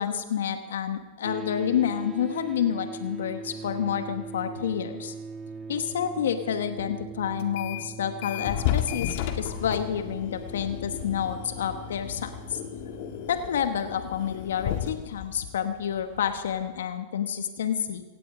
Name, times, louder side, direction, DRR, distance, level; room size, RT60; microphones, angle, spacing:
voice 1, 0.0-5.1 5.7-12.6 13.3-18.0, left 8 dB, 80° left, 8 dB, 1.1 m, -29 dB
sound 1, 1.2-13.4, right 5 dB, 20° right, 0.6 m, -41 dB
sound 2, 7.4-7.9 8.2-16.7, left 11 dB, 60° left, 1.8 m, -34 dB
17.0 x 16.0 x 5.0 m, 1.3 s
hypercardioid pair, 105°, 0 cm